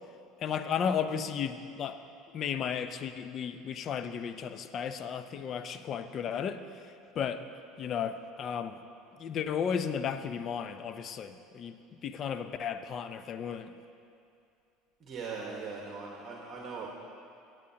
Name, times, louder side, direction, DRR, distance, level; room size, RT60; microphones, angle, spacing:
voice 1, 0.4-2.0 2.3-7.4 7.8-8.8 9.2-13.7, left 7 dB, 45° left, 10 dB, 0.6 m, -34 dB
voice 2, 15.0-16.9, right 4 dB, 45° right, -2 dB, 1.4 m, -40 dB
17.0 x 8.6 x 2.9 m, 2.5 s
supercardioid pair, 100°, 0 cm